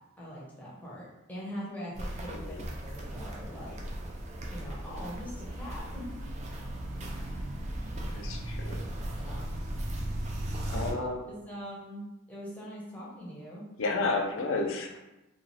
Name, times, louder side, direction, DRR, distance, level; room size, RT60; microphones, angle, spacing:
voice 1, 0.2-3.8 4.5-6.2 9.2-9.5 10.6-10.9 11.3-13.7, equal, 5° left, -7 dB, 0.7 m, -42 dB
Walk footsteps, 1.9-10.9, right 1 dB, 30° right, 0.3 m, -37 dB
voice 2, 8.1-8.8 10.7-11.2 13.8-14.9, left 3 dB, 60° left, 3 dB, 0.4 m, -31 dB
2.6 x 2.3 x 3.0 m, 0.95 s
head